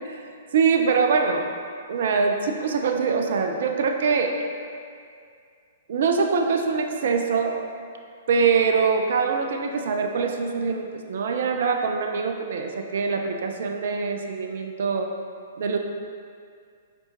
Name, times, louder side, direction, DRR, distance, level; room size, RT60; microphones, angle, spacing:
voice 1, 0.5-1.5 1.9-4.3 5.9-7.6 8.3-15.1 15.6-15.8, right 5 dB, 60° right, 4 dB, 0.5 m, -23 dB
6.9 x 4.9 x 3.0 m, 2.3 s
figure-of-eight pair, 115°, 0 cm